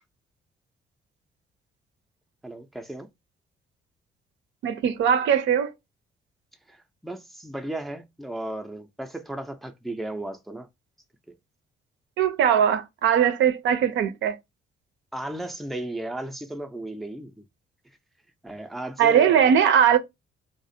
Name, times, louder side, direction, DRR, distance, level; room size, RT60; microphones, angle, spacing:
voice 1, 2.4-3.1 6.7-10.7 15.1-17.4 18.4-19.5, right 1 dB, ahead, 0.4 m, -35 dB
voice 2, 4.6-5.7 12.2-14.4 19.0-20.0, right 8 dB, 70° right, 0.5 m, -20 dB
2.4 x 2.0 x 2.6 m
cardioid pair, 90°, 20 cm